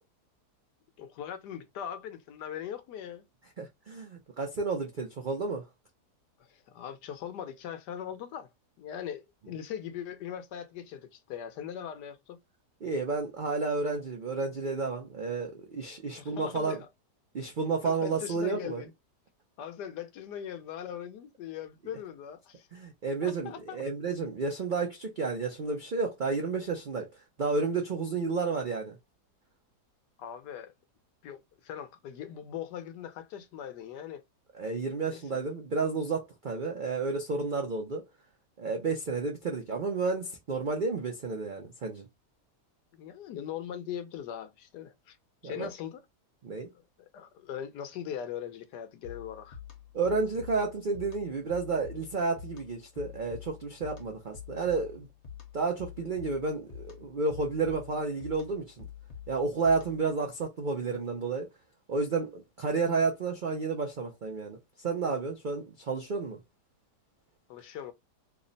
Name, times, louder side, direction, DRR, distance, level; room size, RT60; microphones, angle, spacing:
voice 1, 1.0-3.2 6.4-8.5 8.8-12.4 16.2-16.9 17.8-18.9 19.6-22.7 23.2-23.8 30.2-30.7 31.2-34.2 35.0-35.4 42.9-45.2 45.4-46.0 46.7-49.6 67.5-67.9, left 9 dB, 80° left, 1.3 m, -40 dB
voice 2, 3.6-5.7 12.8-16.8 17.3-18.8 22.7-27.1 27.4-29.0 34.5-38.0 38.6-42.1 45.4-45.7 46.4-46.7 49.9-55.1 55.5-58.9 59.3-61.5 61.9-66.4, right 4 dB, 85° right, 0.4 m, -31 dB
sound 1, 49.0-60.2, left 8 dB, 50° left, 1.1 m, -47 dB
3.4 x 2.1 x 3.8 m
omnidirectional pair, 1.8 m